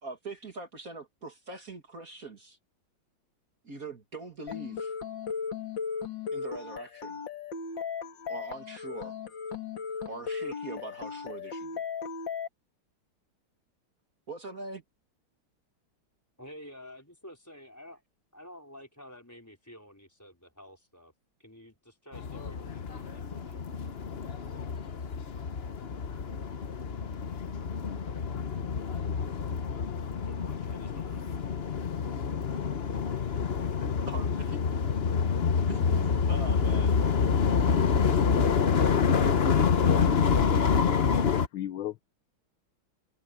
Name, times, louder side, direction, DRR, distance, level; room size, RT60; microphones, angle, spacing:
voice 1, 0.0-2.6 3.6-4.9 6.3-7.2 8.3-9.1 10.1-11.8 14.3-14.8 33.6-34.6 35.7-37.0, right 3 dB, 45° right, 2.5 m, -42 dB
sound 1, 4.5-12.5, left 6 dB, 65° left, 2.8 m, -36 dB
voice 2, 16.4-18.0 18.3-21.1 21.4-23.6 30.2-31.8, equal, 10° left, 4.7 m, -50 dB
sound 2, 22.1-41.5, left 6 dB, 40° left, 0.9 m, -27 dB
voice 3, 40.5-41.9, left 13 dB, 85° left, 1.7 m, -37 dB
omnidirectional pair, 2.2 m